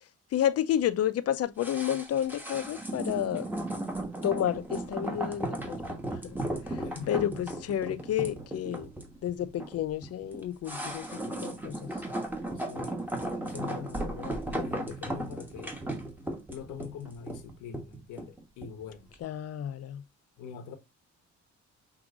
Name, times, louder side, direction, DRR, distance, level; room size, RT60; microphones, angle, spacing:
voice 1, 0.3-3.5 4.2-6.0 6.2-6.4 6.7-8.9 9.2-11.9 19.2-20.0, left 10 dB, 55° left, 0.5 m, -31 dB
sound 1, 1.6-18.8 19.1-19.2, right 1 dB, 5° right, 1.1 m, -36 dB
voice 2, 6.8-7.5 12.5-13.0 13.4-15.8 16.5-19.1 20.4-20.8, left 7 dB, 90° left, 1.0 m, -43 dB
6.1 x 2.6 x 2.4 m
cardioid pair, 90°, 30 cm